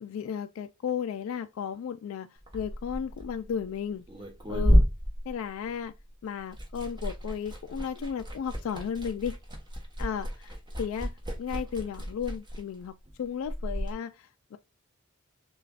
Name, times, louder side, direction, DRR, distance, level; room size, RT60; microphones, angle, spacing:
voice 1, 0.0-2.3 2.5-4.0 4.5-4.8 5.3-5.9 6.2-9.3 10.0-11.1 11.4-14.6, left 7 dB, 75° left, 0.3 m, -34 dB
Liquid, 2.4-6.1 6.3-13.9, equal, 20° right, 1.1 m, -30 dB
6.5 x 2.3 x 2.3 m
head